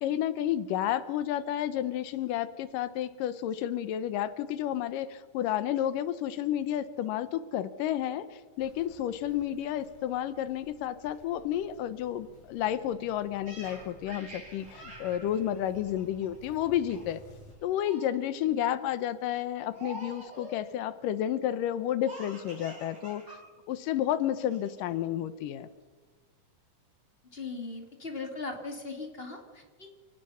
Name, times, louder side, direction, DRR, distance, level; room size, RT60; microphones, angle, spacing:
voice 1, 0.0-17.2 17.6-23.4 23.7-25.7, left 11 dB, 90° left, 14 dB, 2.6 m, -31 dB
Walk footsteps, 8.6-17.5, left 1 dB, 60° left, 6.3 m, -55 dB
Laughter, 13.5-16.5 16.9-17.2 17.5-18.1 18.6-18.9 19.7-20.6 22.1-23.4 23.7-23.8 24.4-24.9, right 1 dB, 65° right, 9.0 m, -46 dB
voice 2, 27.3-30.0, left 3 dB, 20° left, 4 dB, 2.4 m, -39 dB
28.5 x 18.0 x 5.7 m, 1.4 s
omnidirectional pair, 3.7 m